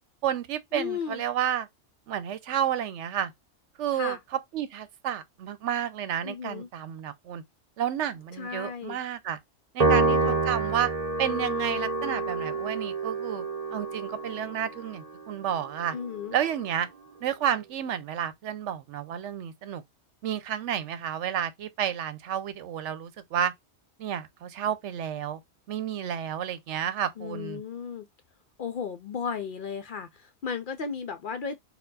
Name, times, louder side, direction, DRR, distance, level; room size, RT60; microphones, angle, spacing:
voice 1, 0.2-1.7 2.1-3.3 3.8-7.4 7.8-9.4 9.7-10.9 11.2-13.4 13.7-16.0 16.3-16.9 17.2-19.8 20.2-23.5 24.0-25.4 25.7-27.6, right 10 dB, 85° right, 0.9 m, -31 dB
voice 2, 0.7-1.2 3.9-4.2 6.2-6.7 8.4-9.0 9.8-10.4 15.9-16.3 27.2-28.1 28.6-31.6, left 6 dB, 60° left, 0.6 m, -35 dB
Piano, 9.8-16.4, right 3 dB, 35° right, 0.8 m, -28 dB
4.3 x 2.3 x 3.9 m
omnidirectional pair, 1.2 m